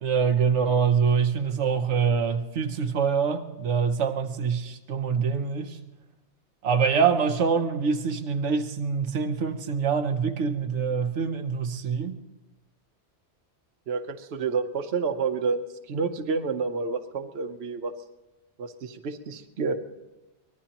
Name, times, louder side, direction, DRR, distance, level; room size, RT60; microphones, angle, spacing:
voice 1, 0.0-5.8 6.6-12.2, right 6 dB, 90° right, 1.1 m, -25 dB
voice 2, 13.9-17.9 18.6-19.7, right 4 dB, 65° right, 1.1 m, -29 dB
24.0 x 19.5 x 2.9 m
omnidirectional pair, 1.2 m